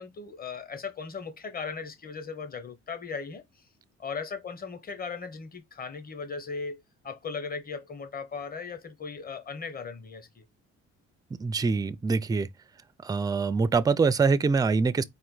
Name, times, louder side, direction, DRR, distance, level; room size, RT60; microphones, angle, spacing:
voice 1, 0.0-3.4 4.0-10.4, left 5 dB, 30° left, 1.1 m, -37 dB
voice 2, 11.4-12.5 13.0-15.0, right 4 dB, 15° right, 0.4 m, -24 dB
4.4 x 2.5 x 3.8 m
cardioid pair, 90°, 30 cm